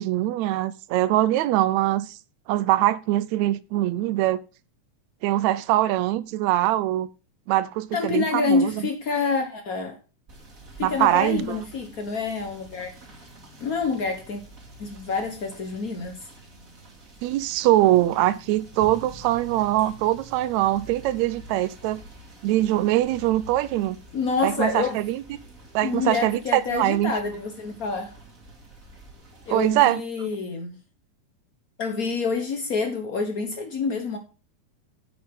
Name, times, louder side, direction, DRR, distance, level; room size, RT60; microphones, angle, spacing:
voice 1, 0.0-2.2 2.5-4.4 5.2-7.1 7.5-8.7 10.8-11.6 17.2-22.0 22.4-24.0 24.4-25.2 25.7-27.1 29.5-30.0, right 14 dB, 75° right, 1.8 m, -22 dB
voice 2, 7.9-10.0 10.8-12.9 13.6-14.4 14.8-16.3 24.1-25.0 25.8-28.1 29.5-30.8 31.8-34.2, left 4 dB, 80° left, 0.8 m, -27 dB
Rain / Motor vehicle (road), 10.3-29.9, right 1 dB, 30° right, 2.4 m, -47 dB
9.9 x 8.2 x 3.7 m
omnidirectional pair, 3.6 m